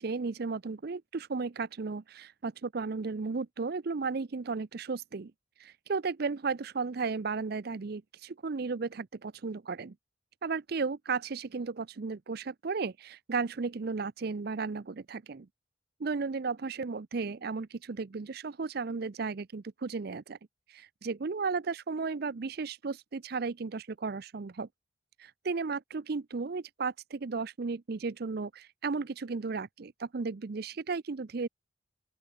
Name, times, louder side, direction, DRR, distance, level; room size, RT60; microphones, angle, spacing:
voice 1, 0.0-5.3 5.6-10.0 10.4-15.5 16.0-20.4 21.0-24.7 25.2-31.5, right 4 dB, 55° right, 0.5 m, -34 dB
open air
head